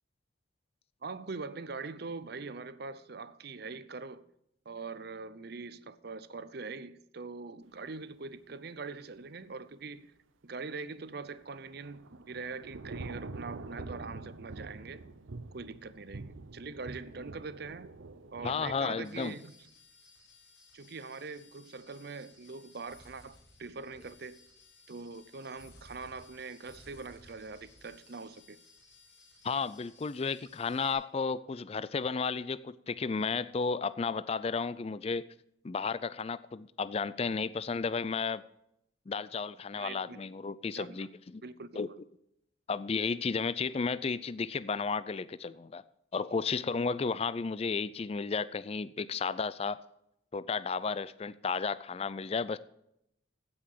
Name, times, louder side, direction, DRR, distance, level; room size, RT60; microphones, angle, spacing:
voice 1, 1.0-4.3 4.7-10.1 10.4-15.0 15.5-17.9 18.3-19.6 20.7-24.4 24.9-28.6 39.7-40.2 40.7-41.1 41.4-41.8, right 4 dB, 55° right, 0.6 m, -43 dB
Thunder / Rain, 11.4-18.8, right 3 dB, 90° right, 0.8 m, -45 dB
voice 2, 18.4-19.3 29.4-35.3 35.6-38.4 39.1-41.1 41.3-41.4 41.8-41.9 42.7-45.8 46.1-49.8 50.3-52.6, left 5 dB, 30° left, 0.4 m, -33 dB
sound 1, 19.0-30.9, left 3 dB, 70° left, 5.4 m, -59 dB
15.5 x 5.8 x 6.6 m
head